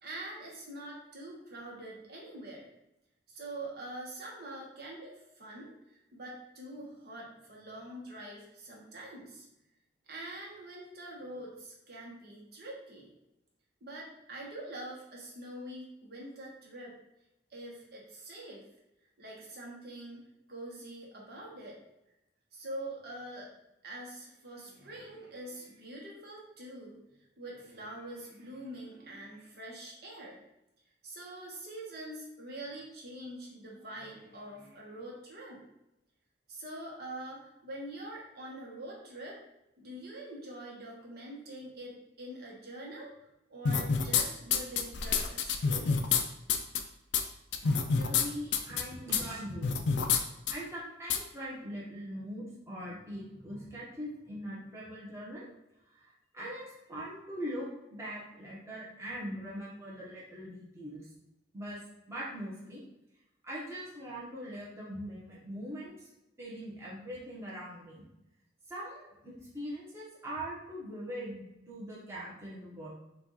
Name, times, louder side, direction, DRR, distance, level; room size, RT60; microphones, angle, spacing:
voice 1, 0.0-2.7 3.3-9.5 10.1-13.1 13.8-16.9 17.5-18.7 19.2-21.8 22.5-23.5 23.8-27.0 27.4-30.4 31.0-35.6 36.5-39.4 39.8-43.1 43.5-46.3, right 1 dB, 55° right, -3 dB, 1.1 m, -45 dB
sound 1, 43.7-44.2 44.5-46.2 46.5-46.8 47.1-47.2 47.5-48.2 48.5-48.8 49.1-49.2 49.6-50.2 50.5-50.6 51.1-51.2, left 6 dB, 70° left, 0.4 m, -27 dB
voice 2, 47.6-49.7 50.5-55.5 55.9-61.1 61.5-61.8 62.1-62.8 63.4-66.1 66.4-68.1 68.7-72.9, equal, 15° right, -6 dB, 1.1 m, -41 dB
4.6 x 2.4 x 3.9 m, 0.88 s
head